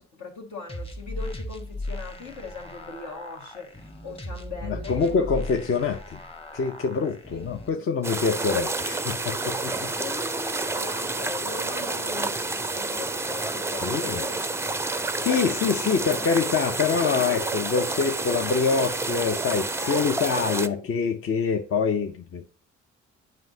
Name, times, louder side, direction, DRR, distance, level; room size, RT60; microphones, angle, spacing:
voice 1, 0.0-5.3 7.3-7.5 7.7-8.0 10.0-14.4 14.9-15.4 19.8-20.9, left 4 dB, 70° left, 1.7 m, -40 dB
sound 1, 0.7-7.7, left 1 dB, 20° left, 1.0 m, -37 dB
voice 2, 4.7-6.2 6.5-9.9 13.8-14.2 15.2-22.5, left 5 dB, 45° left, 0.7 m, -25 dB
sound 2, 8.0-20.7, right 3 dB, 10° right, 0.4 m, -29 dB
7.5 x 5.2 x 2.7 m
supercardioid pair, 55°, 30 cm